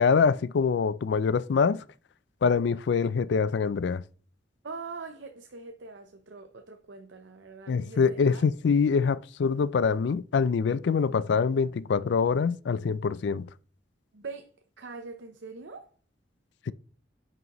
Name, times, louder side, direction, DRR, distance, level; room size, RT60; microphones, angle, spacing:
voice 1, 0.0-1.8 2.4-4.0 7.7-13.4, left 5 dB, 65° left, 0.4 m, -24 dB
voice 2, 4.6-8.4 14.1-14.5 14.8-15.9, right 4 dB, 75° right, 0.7 m, -43 dB
9.1 x 6.0 x 3.0 m
head